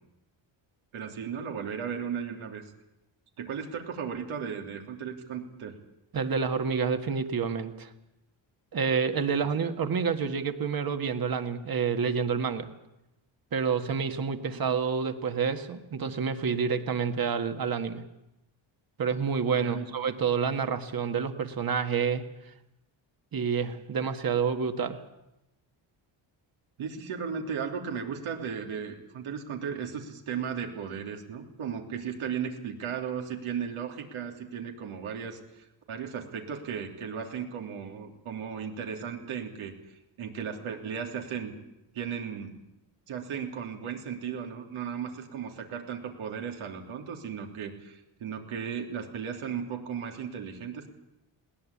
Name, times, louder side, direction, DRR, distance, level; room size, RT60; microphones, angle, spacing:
voice 1, 0.9-2.6 3.4-5.8 14.5-14.6 19.6-19.9 26.8-41.5 41.9-42.5 43.1-50.9, right 7 dB, 85° right, 3 dB, 3.4 m, -36 dB
voice 2, 6.1-7.9 8.7-12.7 13.5-18.0 19.0-22.3 23.3-25.0, right 6 dB, 45° right, 8 dB, 1.8 m, -28 dB
21.0 x 18.0 x 8.6 m, 0.91 s
cardioid pair, 130°, 48 cm